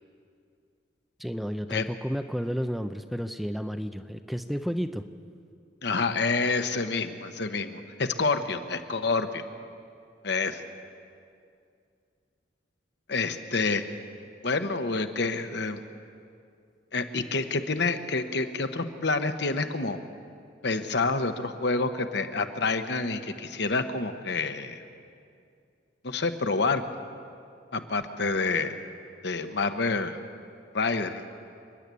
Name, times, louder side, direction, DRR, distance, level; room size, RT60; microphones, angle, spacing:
voice 1, 1.2-5.0, equal, ahead, 8 dB, 0.5 m, -32 dB
voice 2, 5.8-9.4 10.2-10.6 13.1-13.8 14.4-15.8 16.9-20.0 20.6-24.8 26.0-26.8 27.7-28.8 29.2-30.2 30.7-31.3, left 3 dB, 65° left, 8 dB, 1.1 m, -28 dB
29.0 x 10.5 x 8.4 m, 2.4 s
head